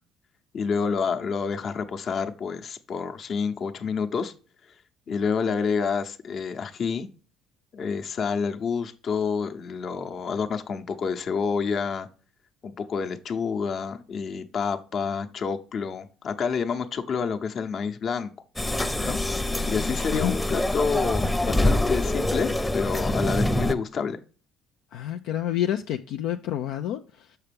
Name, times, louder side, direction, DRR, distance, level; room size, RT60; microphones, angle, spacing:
voice 1, 0.5-4.3 5.1-7.1 7.7-12.1 12.6-18.3 18.8-19.2 19.7-24.2, left 5 dB, 50° left, 0.9 m, -28 dB
sound 1, 18.6-23.7, left 1 dB, 10° left, 0.7 m, -25 dB
voice 2, 19.5-20.3 24.9-27.4, left 11 dB, 75° left, 0.4 m, -29 dB
6.5 x 5.8 x 3.4 m
supercardioid pair, 70°, 0 cm